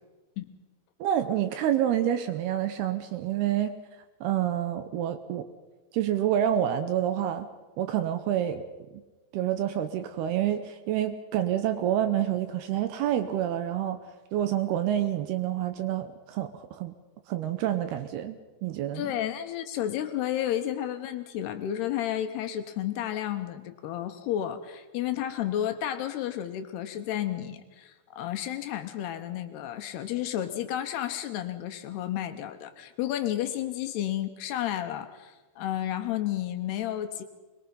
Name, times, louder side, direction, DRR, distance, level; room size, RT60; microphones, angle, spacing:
voice 1, 1.0-3.8 4.2-5.5 5.9-7.5 7.8-8.6 8.9-9.0 9.3-14.0 14.3-16.9 17.3-18.4 18.6-19.1, right 11 dB, 75° right, 10 dB, 2.5 m, -28 dB
voice 2, 19.0-37.2, left 11 dB, 75° left, 8 dB, 2.8 m, -32 dB
22.0 x 22.0 x 5.5 m, 1.2 s
omnidirectional pair, 5.2 m